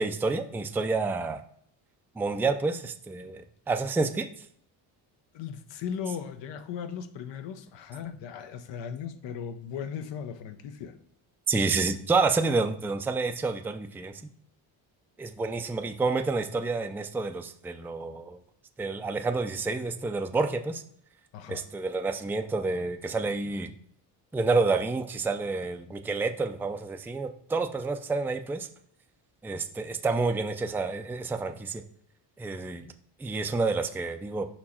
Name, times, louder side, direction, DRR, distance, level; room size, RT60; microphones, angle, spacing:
voice 1, 0.0-1.4 2.2-4.3 11.5-14.1 15.2-18.4 18.8-20.8 21.5-23.7 24.3-28.7 29.4-31.8 32.4-32.8 33.2-34.5, right 3 dB, 5° right, 0.4 m, -29 dB
voice 2, 5.3-10.9 21.3-21.7, left 7 dB, 75° left, 0.8 m, -37 dB
5.2 x 4.5 x 4.2 m
cardioid pair, 95°, 43 cm